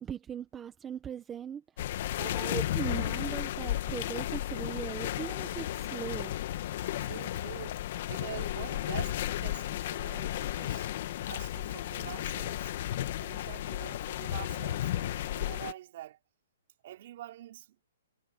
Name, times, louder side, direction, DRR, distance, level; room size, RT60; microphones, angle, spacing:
voice 1, 0.0-6.3, right 8 dB, 10° right, 1.1 m, -39 dB
sound 1, 1.8-15.7, left 13 dB, 40° left, 1.3 m, -34 dB
voice 2, 7.0-10.9 11.2-12.7 13.2-16.2 16.8-17.8, right 13 dB, 40° right, 5.0 m, -46 dB
hypercardioid pair, 170°, 0 cm